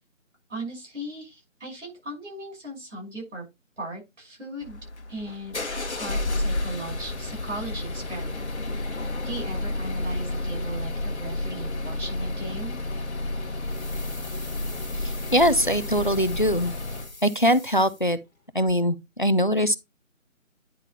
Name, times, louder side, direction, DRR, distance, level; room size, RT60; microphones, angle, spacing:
voice 1, 0.5-3.4 3.8-4.8 5.1-5.6 5.9-12.8, right 1 dB, 60° right, 5.9 m, -37 dB
sound 1, 4.6-17.1, left 2 dB, 55° left, 1.3 m, -31 dB
sound 2, 13.6-18.4 18.7-18.8, left 2 dB, ahead, 1.3 m, -44 dB
voice 2, 15.3-16.7 17.2-18.2 18.5-19.8, equal, 40° left, 0.4 m, -22 dB
9.9 x 3.5 x 4.4 m
figure-of-eight pair, 170°, 40 cm